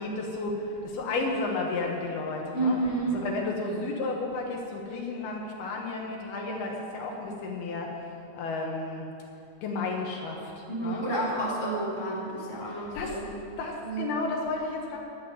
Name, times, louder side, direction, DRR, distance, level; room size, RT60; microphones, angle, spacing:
voice 1, 0.0-2.8 3.1-7.9 8.3-9.1 9.6-11.1 12.7-13.2 13.6-15.0, left 3 dB, 70° left, 0 dB, 3.1 m, -32 dB
voice 2, 2.5-3.2 10.7-13.3 13.8-14.1, right 2 dB, 10° right, -6 dB, 3.1 m, -30 dB
11.5 x 9.1 x 9.5 m, 2.8 s
omnidirectional pair, 4.7 m